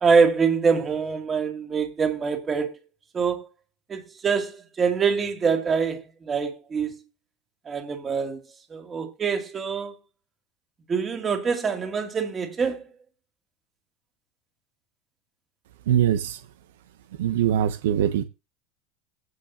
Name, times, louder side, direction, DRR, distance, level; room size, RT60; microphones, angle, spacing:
voice 1, 0.0-2.8 3.1-3.5 3.9-6.9 7.7-8.4 8.7-9.9 10.9-12.8, right 5 dB, 30° right, 2.8 m, -24 dB
voice 2, 15.9-16.4 17.2-18.2, right 10 dB, 85° right, 0.8 m, -22 dB
16.0 x 6.6 x 2.9 m
supercardioid pair, 100°, 0 cm